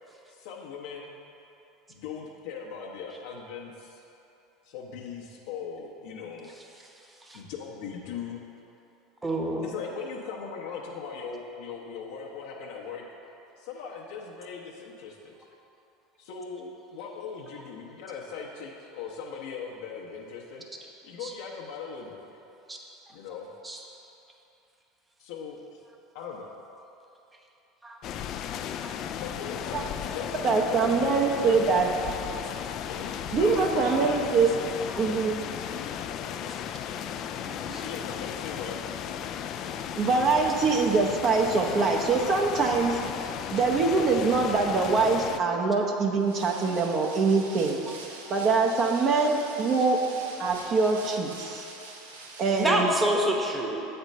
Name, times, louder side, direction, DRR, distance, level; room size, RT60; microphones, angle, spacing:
voice 1, 0.3-1.2 1.9-4.0 4.6-6.5 7.3-8.4 9.6-13.0 13.6-15.5 16.2-20.6 21.0-22.3 23.1-23.5 25.2-25.8 26.1-26.5 29.2-31.8 32.8-34.2 37.8-38.8, left 6 dB, 65° left, -2 dB, 0.8 m, -39 dB
voice 2, 9.2-9.7 21.2-21.3 22.7-22.8 23.6-23.8 27.8-28.0 37.7-37.8 52.5-53.8, right 1 dB, 15° right, 1 dB, 1.0 m, -27 dB
sound 1, 28.0-45.4, left 9 dB, 50° left, 0.3 m, -35 dB
voice 3, 30.4-31.9 33.3-34.5 35.0-35.4 37.5-37.9 39.6-47.8 48.3-50.0 50.4-51.7 52.4-52.9, right 4 dB, 45° right, 1 dB, 0.7 m, -24 dB
sound 2, 46.2-52.9, right 3 dB, 80° right, 0.8 m, -44 dB
8.0 x 4.4 x 5.3 m, 2.9 s
hypercardioid pair, 80°, 0 cm